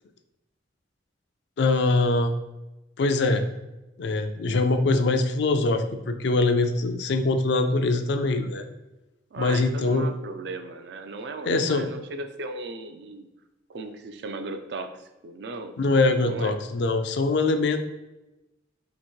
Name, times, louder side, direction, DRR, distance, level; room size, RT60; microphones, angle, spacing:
voice 1, 1.6-2.3 3.0-3.4 4.0-8.7 9.4-10.1 11.4-11.9 15.8-17.8, left 3 dB, 60° left, 7 dB, 0.4 m, -23 dB
voice 2, 9.3-13.3 13.7-15.7 16.2-16.6, right 2 dB, 60° right, 7 dB, 0.4 m, -36 dB
2.9 x 2.8 x 4.4 m, 0.98 s
head